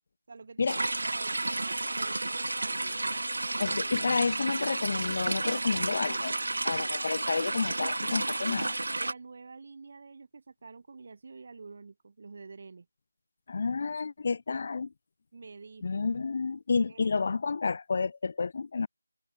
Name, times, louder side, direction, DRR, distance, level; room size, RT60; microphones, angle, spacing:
voice 1, 0.3-0.7 1.1-3.3 9.0-12.9 15.3-16.0 16.9-17.0, right 4 dB, 40° right, 6.4 m, -48 dB
sound 1, 0.7-9.1, right 2 dB, 70° right, 0.7 m, -31 dB
voice 2, 3.6-6.4 6.6-8.8 13.5-14.9 15.8-18.9, left 4 dB, 35° left, 2.3 m, -30 dB
figure-of-eight pair, 175°, 0 cm